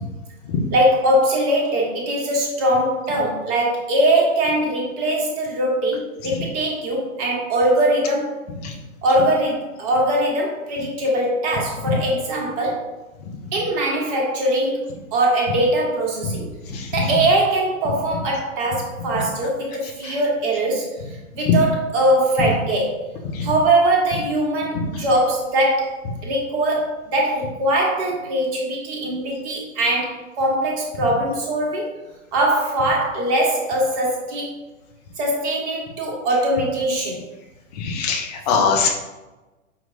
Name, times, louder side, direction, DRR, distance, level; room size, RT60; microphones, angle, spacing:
voice 1, 0.7-8.4 9.0-12.9 13.5-16.5 16.9-20.9 21.3-23.0 23.4-25.9 26.2-31.9 32.3-34.6 35.2-37.2, right 1 dB, 30° right, -1 dB, 1.0 m, -21 dB
voice 2, 37.9-38.9, left 5 dB, 30° left, 1 dB, 0.6 m, -20 dB
5.3 x 2.9 x 2.6 m, 1.1 s
figure-of-eight pair, 120°, 40 cm